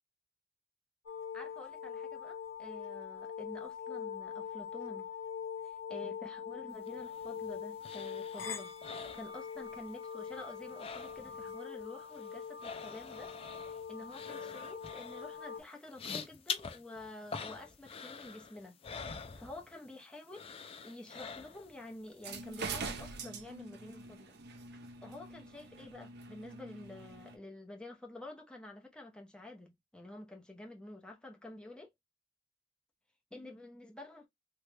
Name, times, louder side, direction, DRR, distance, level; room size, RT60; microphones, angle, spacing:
sound 1, 1.1-15.6, left 7 dB, 90° left, 0.8 m, -43 dB
voice 1, 1.3-5.1 5.6-13.3 13.7-18.8 19.1-24.4 25.0-31.9 33.3-34.3, left 2 dB, 5° left, 0.7 m, -49 dB
sound 2, 6.9-9.9 10.2-11.5 11.8-20.0 20.3-21.8 22.2-22.3, left 6 dB, 30° left, 0.4 m, -46 dB
sound 3, 22.1-27.4, right 4 dB, 60° right, 0.6 m, -44 dB
3.1 x 2.2 x 3.1 m
head